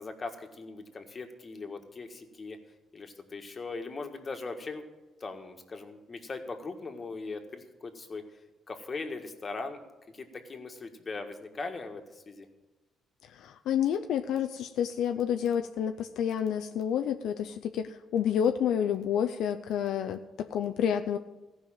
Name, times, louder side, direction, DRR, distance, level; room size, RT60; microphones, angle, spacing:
voice 1, 0.0-2.6 2.9-4.8 5.2-8.2 8.7-9.8 10.1-12.5, left 3 dB, 35° left, 5 dB, 1.6 m, -40 dB
voice 2, 13.2-21.2, left 9 dB, 80° left, 7 dB, 0.5 m, -29 dB
15.0 x 5.5 x 8.9 m, 1.1 s
cardioid pair, 90°, 0 cm